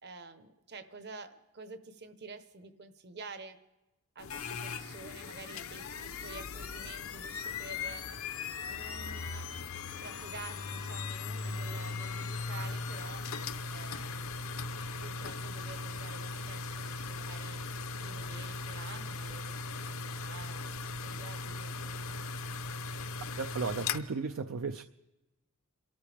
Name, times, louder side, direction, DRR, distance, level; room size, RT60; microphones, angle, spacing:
voice 1, 0.0-3.6 4.1-5.9 6.2-8.1 8.7-9.5 9.8-13.3 13.7-14.5 15.0-17.6 18.0-22.3, right 4 dB, 50° right, 10 dB, 1.0 m, -49 dB
sound 1, 4.2-24.0, left 4 dB, 70° left, 0.7 m, -38 dB
voice 2, 23.4-24.8, right 4 dB, 65° right, 8 dB, 0.5 m, -35 dB
28.5 x 13.5 x 3.4 m, 1.0 s
head